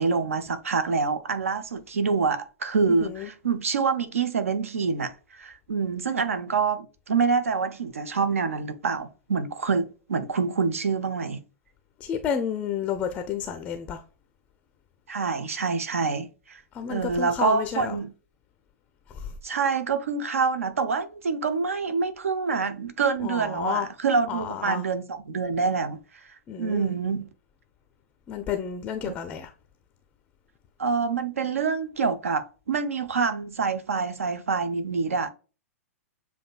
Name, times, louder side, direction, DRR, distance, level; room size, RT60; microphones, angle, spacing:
voice 1, 0.0-11.4 15.1-16.6 16.9-18.1 19.4-26.0 26.6-27.3 29.0-29.1 30.8-35.3, right 5 dB, 65° right, 0.6 m, -26 dB
voice 2, 2.9-3.3 6.1-6.2 12.0-14.0 16.7-18.0 19.1-19.3 23.2-23.9 24.3-24.9 26.5-26.9 28.3-29.5, left 8 dB, 20° left, 0.4 m, -31 dB
7.2 x 2.6 x 2.3 m
figure-of-eight pair, 105°, 8 cm